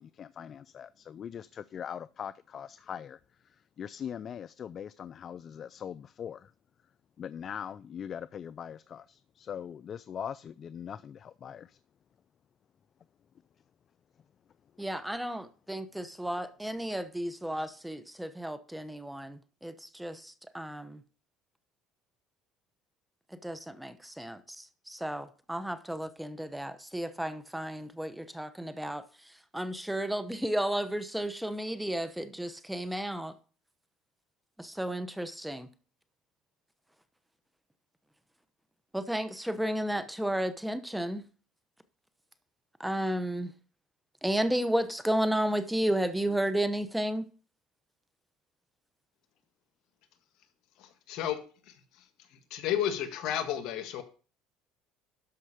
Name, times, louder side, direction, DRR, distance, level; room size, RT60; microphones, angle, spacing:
voice 1, 0.0-3.2 3.8-6.5 7.2-11.8, left 8 dB, 45° left, 0.4 m, -41 dB
voice 2, 14.8-21.0 23.4-29.0 29.5-33.3 34.6-35.7 38.9-41.3 42.8-43.5 44.2-47.3, right 1 dB, 5° right, 1.0 m, -33 dB
voice 3, 50.8-51.4 51.6-52.0 52.5-54.0, left 10 dB, 70° left, 1.7 m, -32 dB
12.5 x 5.4 x 5.0 m
supercardioid pair, 90°, 0 cm